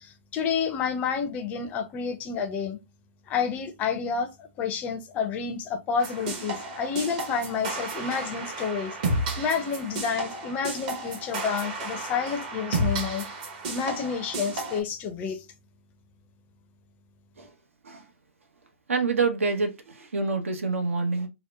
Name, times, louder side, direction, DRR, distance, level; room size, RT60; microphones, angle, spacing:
voice 1, 0.0-2.8 3.3-4.3 4.6-9.0 9.4-13.3 13.7-15.5, left 6 dB, 20° left, 0.4 m, -29 dB
sound 1, 6.0-14.8, right 2 dB, 40° right, 0.9 m, -32 dB
voice 2, 18.9-21.3, right 4 dB, 80° right, 0.9 m, -27 dB
2.9 x 2.0 x 3.2 m
hypercardioid pair, 140°, 7 cm